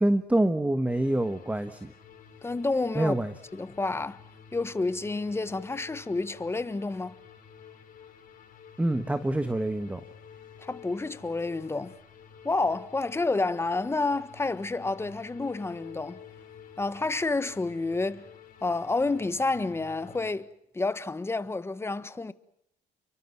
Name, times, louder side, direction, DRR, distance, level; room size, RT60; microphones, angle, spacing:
voice 1, 0.0-1.9 2.9-3.3 8.8-10.0, right 1 dB, 10° right, 1.4 m, -26 dB
sound 1, 0.9-20.3, left 7 dB, 55° left, 6.6 m, -50 dB
voice 2, 2.4-3.1 3.5-4.2 4.5-7.2 10.6-11.9 12.4-16.2 16.8-18.3 18.6-20.5 20.7-22.3, left 3 dB, 15° left, 1.4 m, -29 dB
30.0 x 23.5 x 6.0 m
cardioid pair, 110°, 17 cm